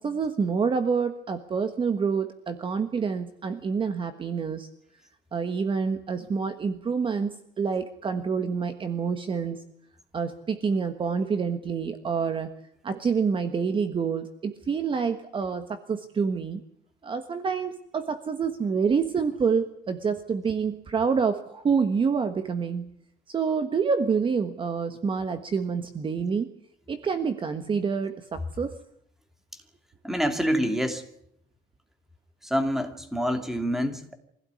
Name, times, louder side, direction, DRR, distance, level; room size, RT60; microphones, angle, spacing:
voice 1, 0.0-4.7 5.3-9.6 10.1-12.5 12.8-16.6 17.0-22.9 23.3-26.5 26.9-28.8, right 5 dB, 30° right, 9 dB, 1.4 m, -27 dB
voice 2, 30.0-31.0 32.4-34.1, equal, ahead, 7 dB, 2.6 m, -26 dB
25.0 x 16.5 x 9.8 m, 0.72 s
cardioid pair, 170°, 18 cm